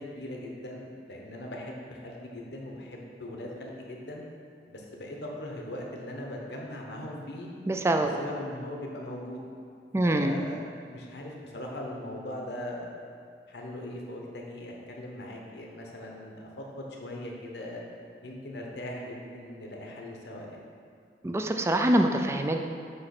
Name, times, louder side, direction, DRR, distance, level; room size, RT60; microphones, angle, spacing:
voice 1, 0.0-4.2 4.7-7.5 8.0-9.4 10.0-12.9 13.5-17.8 18.2-20.6, left 1 dB, 65° left, -1 dB, 1.0 m, -40 dB
voice 2, 7.7-8.1 9.9-10.4 21.2-22.6, right 1 dB, 15° right, 5 dB, 0.3 m, -24 dB
7.7 x 3.1 x 5.9 m, 2.2 s
head